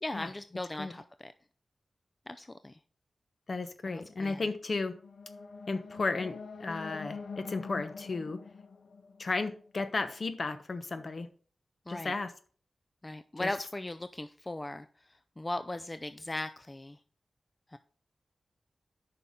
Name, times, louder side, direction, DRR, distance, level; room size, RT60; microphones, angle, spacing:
voice 1, 0.0-1.3 2.3-2.8 3.9-4.4 11.9-12.1 13.0-17.0 17.7-17.8, left 2 dB, 25° left, 10 dB, 0.4 m, -38 dB
voice 2, 3.5-5.0 5.7-8.4 9.2-11.3 11.9-12.3 13.4-13.5, left 3 dB, 55° left, 10 dB, 1.0 m, -34 dB
sound 1, 4.8-9.9, left 4 dB, 85° left, 0.8 m, -45 dB
9.4 x 5.7 x 3.7 m, 0.42 s
wide cardioid pair, 80°, 0 cm